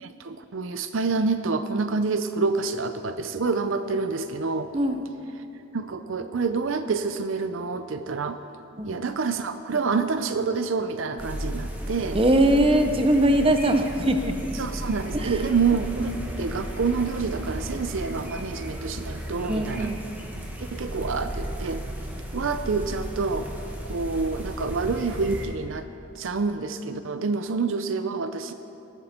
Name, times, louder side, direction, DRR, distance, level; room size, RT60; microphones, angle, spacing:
voice 1, 0.0-4.7 5.7-8.4 8.8-12.2 14.6-19.9 20.6-21.8 22.3-23.5 23.8-25.9 26.2-28.5, right 4 dB, 60° right, 9 dB, 0.5 m, -27 dB
voice 2, 4.7-5.1 8.8-9.2 12.1-14.5 15.1-15.5 19.5-20.0, right 1 dB, 25° right, 7 dB, 0.7 m, -22 dB
sound 1, 11.2-25.5, equal, 10° right, 1.2 m, -34 dB
19.5 x 13.0 x 4.3 m, 2.8 s
head